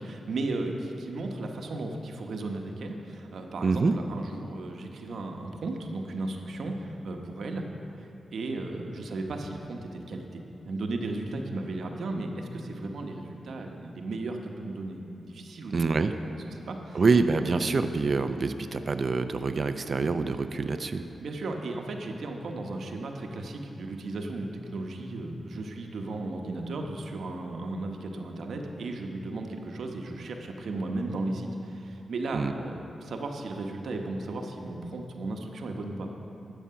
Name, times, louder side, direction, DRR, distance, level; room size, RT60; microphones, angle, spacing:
voice 1, 0.0-7.6 8.0-15.9 16.2-17.0 21.2-36.1, right 2 dB, 75° right, 3 dB, 0.9 m, -35 dB
voice 2, 3.6-4.0 15.7-16.1 16.9-21.0 32.3-32.5, right 4 dB, 50° right, 9 dB, 0.4 m, -26 dB
11.0 x 7.2 x 5.6 m, 2.9 s
cardioid pair, 75°, 0 cm